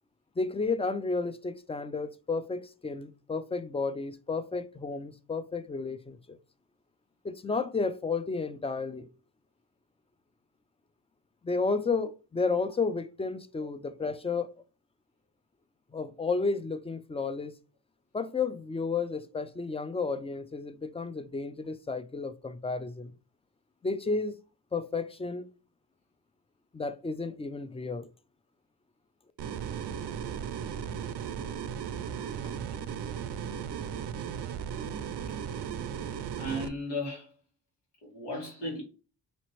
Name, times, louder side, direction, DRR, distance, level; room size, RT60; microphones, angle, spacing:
voice 1, 0.4-6.4 7.2-9.1 11.4-14.5 15.9-17.5 18.1-23.1 23.8-24.4 24.7-25.5 26.7-28.1, left 4 dB, 15° left, 0.4 m, -32 dB
sound 1, 29.4-36.7, right 8 dB, 80° right, 0.5 m, -36 dB
voice 2, 36.4-37.3 38.0-38.8, left 1 dB, 90° left, 2.0 m, -35 dB
4.1 x 2.9 x 3.0 m
cardioid pair, 55°, 41 cm